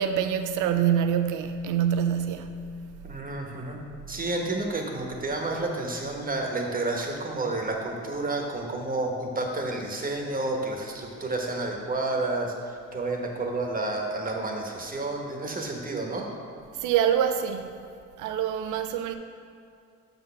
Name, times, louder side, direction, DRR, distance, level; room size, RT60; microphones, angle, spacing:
voice 1, 0.0-2.6 16.8-17.7 18.2-19.2, right 9 dB, 85° right, 0.6 m, -25 dB
voice 2, 3.0-3.8 4.1-16.3, right 2 dB, 30° right, 1.1 m, -30 dB
6.8 x 4.1 x 5.6 m
cardioid pair, 90°, 30 cm